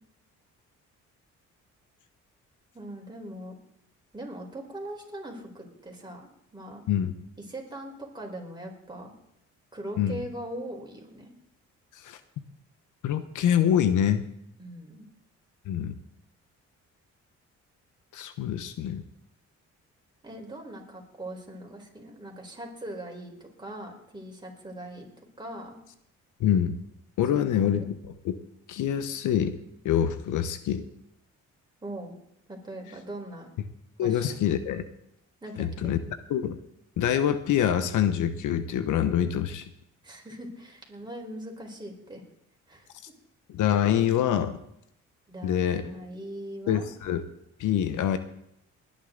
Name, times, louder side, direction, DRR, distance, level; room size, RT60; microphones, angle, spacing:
voice 1, 2.7-3.6 4.1-6.8 7.4-9.1 9.7-11.3 14.6-15.1 20.2-25.1 25.4-25.8 27.3-27.9 31.8-32.1 32.5-33.5 34.0-34.4 35.4-36.0 40.0-42.2 42.7-42.9 45.3-46.9, right 1 dB, 15° right, 0 dB, 4.4 m, -40 dB
voice 2, 13.0-14.2 15.7-15.9 18.1-19.0 26.4-26.8 27.2-27.8 28.2-28.4 28.7-29.6 29.8-30.8 34.0-34.8 35.6-36.0 36.3-36.6 37.0-39.7 43.5-44.6 45.4-45.8 46.7-47.2 47.6-48.2, left 9 dB, 80° left, 11 dB, 1.1 m, -25 dB
20.0 x 10.5 x 3.9 m, 0.77 s
cardioid pair, 90°, 30 cm